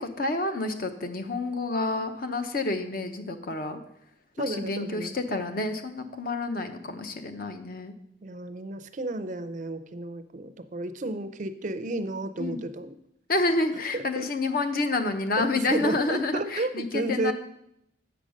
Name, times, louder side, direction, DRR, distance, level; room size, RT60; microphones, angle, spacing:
voice 1, 0.0-3.8 4.4-7.9 12.4-12.6 13.3-17.3, left 2 dB, 50° left, 7 dB, 0.7 m, -29 dB
voice 2, 4.4-5.2 8.2-12.9 13.9-14.3 15.4-17.3, right 2 dB, 40° right, 11 dB, 0.4 m, -32 dB
7.8 x 5.2 x 6.3 m, 0.78 s
head